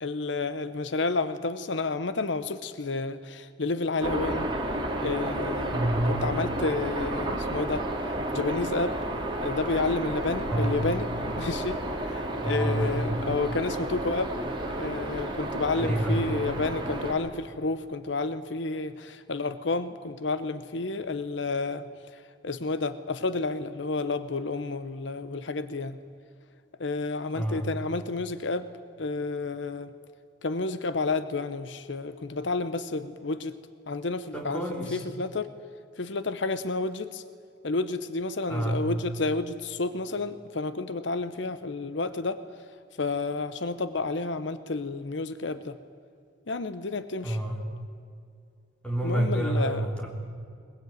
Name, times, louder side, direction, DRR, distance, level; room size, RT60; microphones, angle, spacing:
voice 1, 0.0-4.5 5.0-5.8 6.1-7.8 8.3-9.0 9.4-11.1 11.4-14.3 14.7-26.0 26.8-28.7 29.0-29.9 30.4-33.5 33.9-34.6 34.9-35.5 36.0-37.2 37.6-42.4 43.0-45.8 46.5-47.4 49.0-49.9, left 3 dB, 75° left, 13 dB, 0.9 m, -30 dB
sound 1, 4.0-17.1, right 1 dB, 25° right, 3.0 m, -32 dB
voice 2, 5.7-6.2 10.4-10.8 12.4-13.2 15.7-16.3 27.3-27.7 34.3-35.0 38.5-38.9 47.2-47.7 48.8-50.1, right 1 dB, 5° left, 0 dB, 3.6 m, -28 dB
21.5 x 21.5 x 9.3 m, 2.3 s
head